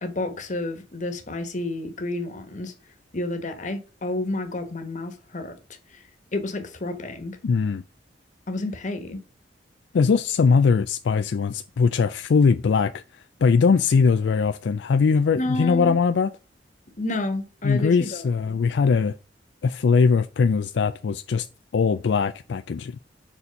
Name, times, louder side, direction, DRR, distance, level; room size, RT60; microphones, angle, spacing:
voice 1, 0.0-2.7 3.1-5.6 6.3-7.4 8.5-9.2 15.3-16.0 17.0-18.2, left 2 dB, 45° left, 1.4 m, -30 dB
voice 2, 7.4-7.8 9.9-16.3 17.6-19.1 19.6-21.5 21.7-23.0, left 5 dB, 75° left, 0.4 m, -21 dB
6.9 x 4.2 x 5.2 m
head